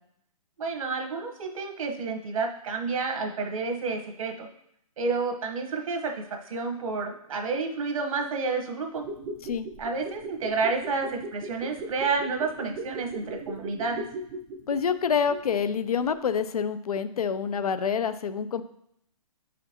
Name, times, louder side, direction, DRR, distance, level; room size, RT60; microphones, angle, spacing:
voice 1, 0.6-4.5 5.0-9.0 9.8-14.0, right 4 dB, 65° right, 2 dB, 1.2 m, -30 dB
sound 1, 8.9-15.8 16.0-16.1, right 2 dB, 15° right, 0.5 m, -38 dB
voice 2, 14.7-18.6, left 6 dB, 90° left, 12 dB, 0.5 m, -27 dB
7.7 x 5.0 x 2.9 m, 0.73 s
hypercardioid pair, 160°, 19 cm